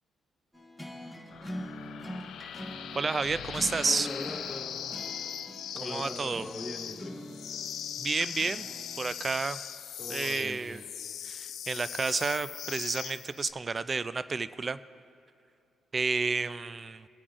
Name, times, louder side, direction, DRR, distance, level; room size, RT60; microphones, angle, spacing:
sound 1, 0.5-9.1, left 1 dB, ahead, 1.4 m, -44 dB
sound 2, 1.3-13.5, left 9 dB, 75° left, 0.4 m, -40 dB
voice 1, 2.9-4.1 5.8-6.4 8.0-8.7 9.0-9.6 10.1-10.8 11.2-14.8 15.9-17.1, right 4 dB, 35° right, 15 dB, 0.3 m, -31 dB
voice 2, 3.8-4.8 5.7-7.2 10.0-10.8, left 2 dB, 15° left, -2 dB, 2.2 m, -40 dB
24.5 x 8.5 x 2.5 m, 2.5 s
cardioid pair, 90°, 0 cm